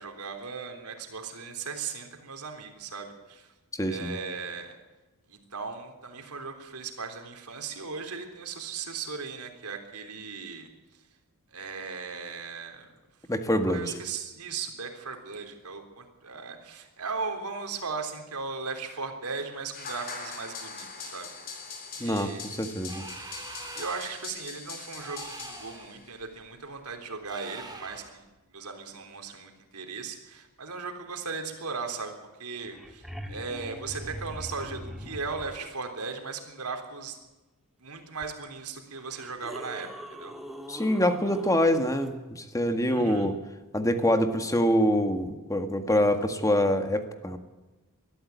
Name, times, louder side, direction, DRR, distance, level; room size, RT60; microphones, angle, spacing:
voice 1, 0.0-3.5 3.9-4.7 5.3-10.7 11.5-12.9 13.6-21.3 22.0-22.5 23.8-32.1 32.4-37.2 37.8-40.3 42.9-43.3, right 4 dB, 85° right, 5 dB, 3.6 m, -37 dB
voice 2, 3.7-4.2 13.3-13.9 22.0-23.1 40.7-43.4 43.7-47.4, equal, 15° left, 7 dB, 1.8 m, -25 dB
sound 1, 19.7-26.1, left 5 dB, 45° left, 4.0 m, -42 dB
sound 2, 22.8-24.3 24.9-25.9 27.2-28.2, right 3 dB, 20° right, 2.9 m, -44 dB
sound 3, 32.3-32.4 32.6-35.7 38.2-38.3 39.0-42.1 44.6-44.7, equal, ahead, 1.8 m, -42 dB
20.5 x 13.5 x 9.5 m, 1.1 s
head